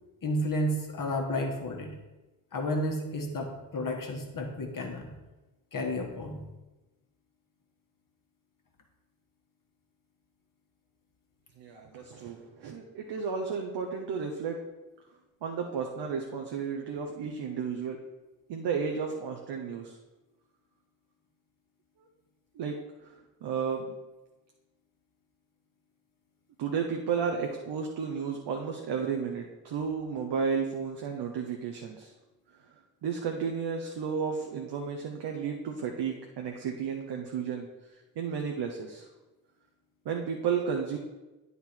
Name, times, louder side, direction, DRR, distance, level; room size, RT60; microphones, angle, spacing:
voice 1, 0.2-2.0 2.5-5.1 5.7-6.4, left 1 dB, 40° left, 1 dB, 1.5 m, -32 dB
voice 2, 11.6-14.6 15.4-18.0 18.5-20.0 22.6-22.8 23.1-23.2 23.4-23.9 26.6-32.1 33.0-37.7 38.2-39.1 40.0-41.0, right 6 dB, 55° right, 2 dB, 0.9 m, -33 dB
9.4 x 4.1 x 4.4 m, 1.1 s
hypercardioid pair, 45°, 49 cm